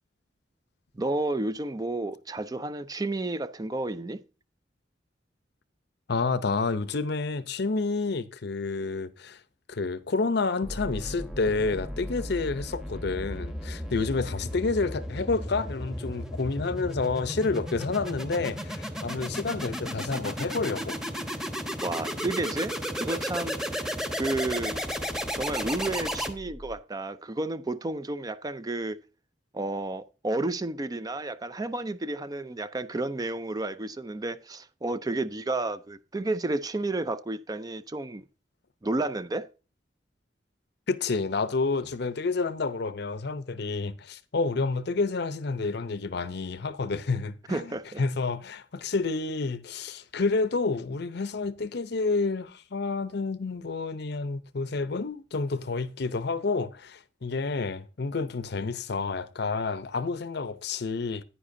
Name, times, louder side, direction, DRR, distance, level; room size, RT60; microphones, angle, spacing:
voice 1, 1.0-4.2 21.8-23.6 24.2-24.8 25.3-29.0 29.5-38.2 38.8-39.5 47.5-48.0, right 2 dB, 20° right, 0.5 m, -31 dB
voice 2, 6.1-9.4 9.7-21.0 40.9-61.2, left 3 dB, 65° left, 0.7 m, -29 dB
sound 1, 10.6-26.7, equal, 5° right, 1.0 m, -34 dB
9.9 x 9.9 x 2.7 m
head